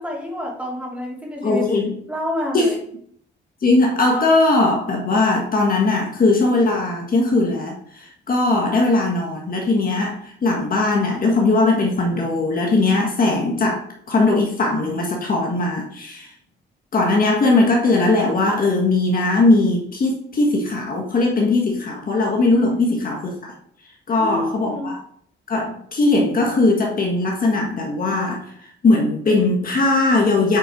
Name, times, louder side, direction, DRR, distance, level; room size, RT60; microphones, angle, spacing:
voice 1, 0.0-1.6 2.1-2.8 22.5-23.0 24.2-24.9, left 1 dB, 5° right, -3 dB, 3.1 m, -28 dB
voice 2, 1.4-1.9 2.5-2.7 3.6-16.3 16.9-23.5 24.1-25.0 25.5-28.5 28.8-30.6, left 2 dB, 45° left, 0 dB, 1.6 m, -19 dB
8.8 x 4.5 x 4.6 m, 0.65 s
cardioid pair, 90°, 20 cm